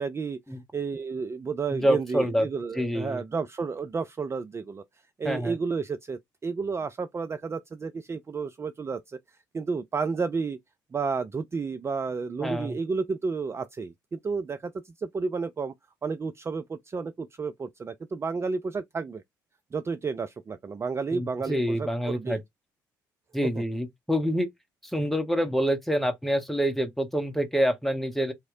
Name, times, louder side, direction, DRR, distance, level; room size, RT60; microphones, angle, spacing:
voice 1, 0.0-0.4 0.7-4.8 5.2-10.6 10.9-15.7 16.0-19.2 19.7-22.4 23.4-23.6, right 4 dB, 25° right, 0.4 m, -31 dB
voice 2, 1.7-2.5 2.7-3.2 5.2-5.5 12.4-12.8 21.1-22.4 23.3-24.5 24.8-28.3, equal, ahead, 1.2 m, -26 dB
3.6 x 3.1 x 2.6 m
figure-of-eight pair, 50°, 10 cm